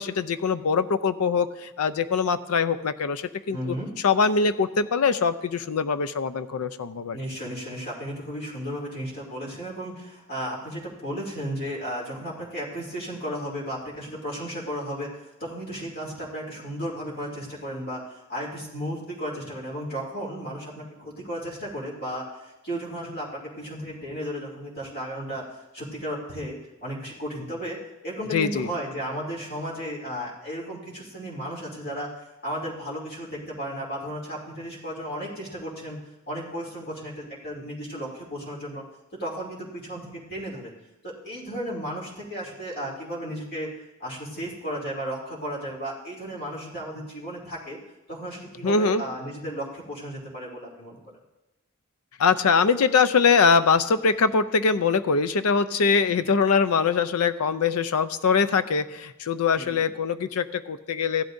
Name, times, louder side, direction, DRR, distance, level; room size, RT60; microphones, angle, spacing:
voice 1, 0.0-3.8 4.0-7.2 28.3-28.7 48.6-49.0 52.2-61.2, left 5 dB, 90° left, 13 dB, 0.5 m, -23 dB
voice 2, 3.5-3.9 7.1-15.1 15.4-27.8 28.0-36.0 36.3-38.8 39.2-40.7 41.0-43.7 44.0-47.8 48.1-51.2 56.1-56.2 59.6-59.8, equal, 45° left, -4 dB, 2.8 m, -34 dB
15.5 x 11.5 x 2.6 m, 1.0 s
head